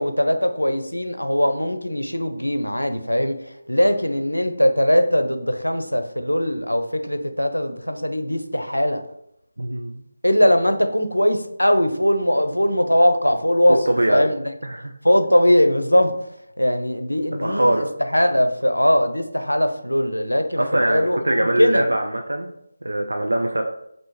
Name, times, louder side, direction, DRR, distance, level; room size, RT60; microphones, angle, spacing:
voice 1, 0.0-9.0 10.2-14.5 15.0-16.1 16.6-21.8, equal, 80° left, 8 dB, 0.5 m, -20 dB
voice 2, 9.6-10.0 13.9-14.3 14.6-14.9 17.4-17.9 20.6-22.5 22.8-23.6, right 1 dB, 70° right, 2 dB, 0.4 m, -22 dB
5.5 x 2.6 x 2.9 m, 0.75 s
figure-of-eight pair, 155°, 0 cm